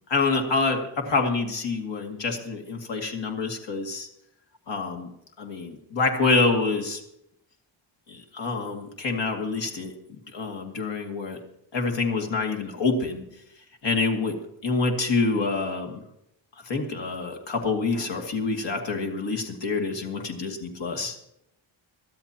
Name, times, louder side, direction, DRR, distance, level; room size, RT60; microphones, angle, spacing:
voice 1, 0.1-4.1 4.7-5.1 5.4-7.0 8.1-9.9 10.3-11.4 11.7-13.2 13.8-16.0 16.7-21.2, left 3 dB, 65° left, 2 dB, 2.3 m, -27 dB
22.0 x 13.5 x 2.9 m, 0.78 s
wide cardioid pair, 150°, 46 cm